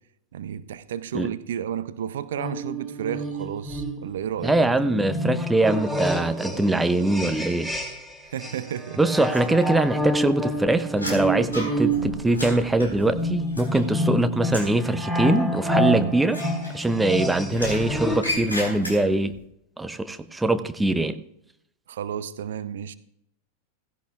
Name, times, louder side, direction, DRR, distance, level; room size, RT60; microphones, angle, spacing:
voice 1, 0.3-4.7 8.2-9.0 21.9-22.9, right 9 dB, 60° right, 0.5 m, -32 dB
sound 1, 2.4-8.1 8.4-18.4, equal, 10° left, 2.8 m, -28 dB
voice 2, 4.4-7.7 9.0-16.4 16.7-19.3 19.8-21.2, right 2 dB, 5° right, 0.7 m, -23 dB
sound 2, 9.3-10.1 10.4-14.1 14.4-14.8 16.2-17.1 17.5-19.3, left 1 dB, 80° left, 4.1 m, -34 dB
16.5 x 15.5 x 2.4 m
figure-of-eight pair, 90°, 0 cm